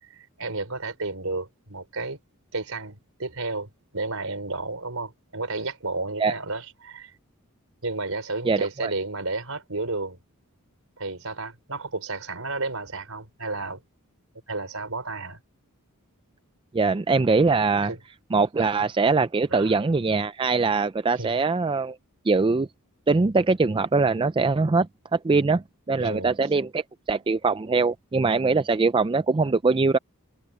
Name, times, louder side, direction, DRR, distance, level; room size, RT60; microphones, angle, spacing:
voice 1, 0.1-2.2 2.5-7.1 7.8-10.2 11.0-13.8 14.5-15.4 17.8-18.0 19.5-19.7 21.1-21.4 26.0-26.3, right 3 dB, 70° right, 4.6 m, -32 dB
voice 2, 8.4-8.9 16.7-17.9 18.3-22.0 22.3-22.7 23.1-26.8 27.1-30.0, right 4 dB, 20° right, 0.4 m, -22 dB
head